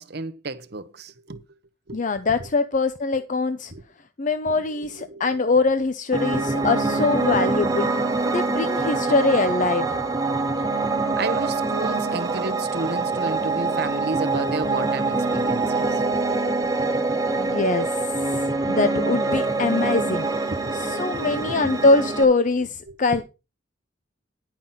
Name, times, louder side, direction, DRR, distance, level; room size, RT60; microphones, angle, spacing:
voice 1, 0.0-1.4 1.9-2.0 3.7-3.8 4.5-4.6 5.0-5.5 11.2-16.0 20.5-20.8 21.1-21.8 22.9-23.0, right 3 dB, 55° right, 1.0 m, -32 dB
voice 2, 1.9-3.7 4.2-10.0 17.4-20.3 20.7-23.2, left 3 dB, 40° left, 0.6 m, -23 dB
Piano, 6.1-22.2, right 3 dB, 20° right, 1.2 m, -24 dB
10.5 x 5.9 x 5.7 m
head